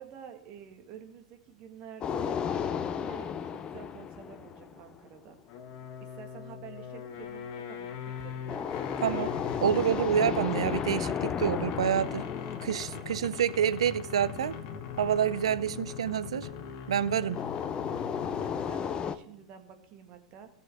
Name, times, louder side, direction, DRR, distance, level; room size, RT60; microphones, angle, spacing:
voice 1, 0.0-2.4 2.9-5.4 6.0-8.8 17.1-17.3 18.2-20.5, right 8 dB, 45° right, 1.7 m, -49 dB
sound 1, 2.0-5.1 8.5-13.9 17.3-19.2, left 7 dB, 30° left, 0.6 m, -34 dB
sound 2, 5.5-18.9, left 7 dB, 50° left, 1.5 m, -40 dB
voice 2, 9.6-12.2 12.6-14.6 15.0-16.5 16.9-17.4, right 9 dB, 70° right, 0.5 m, -28 dB
17.5 x 6.9 x 3.5 m
figure-of-eight pair, 80°, 3 cm